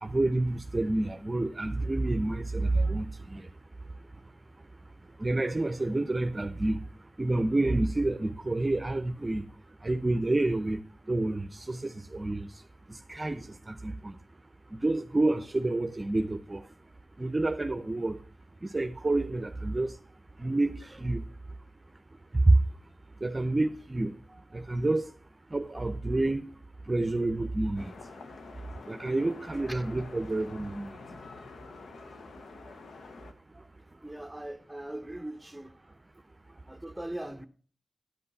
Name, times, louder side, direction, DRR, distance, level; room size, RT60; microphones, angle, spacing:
voice 1, 0.0-3.4 5.2-6.8 7.2-9.5 9.8-10.8 11.1-12.5 12.9-14.2 14.8-16.6 17.2-18.2 18.6-19.9 20.4-21.2 22.4-22.6 23.2-24.1 24.5-25.1 25.5-26.4 26.9-27.9 28.9-30.9, right 2 dB, 35° right, 0.6 m, -28 dB
sound 1, 27.8-33.3, left 4 dB, 85° left, 0.9 m, -47 dB
voice 2, 34.0-35.8 36.7-37.5, right 1 dB, 10° right, 0.9 m, -40 dB
10.5 x 5.5 x 5.5 m
cardioid pair, 40°, 0 cm